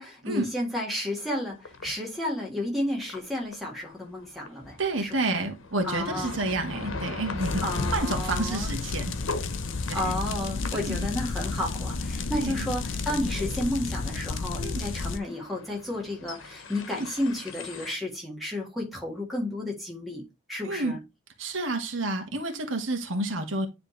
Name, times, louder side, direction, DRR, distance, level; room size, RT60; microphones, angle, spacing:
voice 1, 0.0-5.5 5.8-6.3 7.6-8.7 9.9-21.0, left 1 dB, ahead, 1.6 m, -32 dB
sound 1, 1.5-1.9 2.6-2.7 3.0-3.2 3.5-3.7 4.2-17.9, left 3 dB, 90° left, 1.0 m, -39 dB
voice 2, 4.8-9.1 9.9-10.2 10.7-11.0 12.4-12.7 14.6-14.9 16.9-17.1 20.6-20.9 21.4-23.7, right 2 dB, 80° right, 1.4 m, -30 dB
sound 2, 7.4-15.2, left 3 dB, 70° left, 0.7 m, -32 dB
9.8 x 3.3 x 3.1 m
head